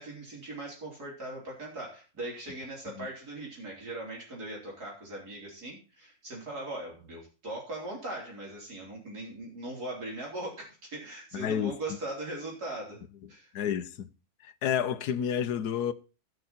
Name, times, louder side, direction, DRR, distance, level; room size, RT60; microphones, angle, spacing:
voice 1, 0.0-13.0 13.3-13.5, right 2 dB, 75° right, 4.6 m, -40 dB
voice 2, 11.3-11.8 13.5-14.1 14.4-15.9, left 9 dB, 90° left, 1.3 m, -30 dB
16.5 x 6.5 x 4.2 m
omnidirectional pair, 1.6 m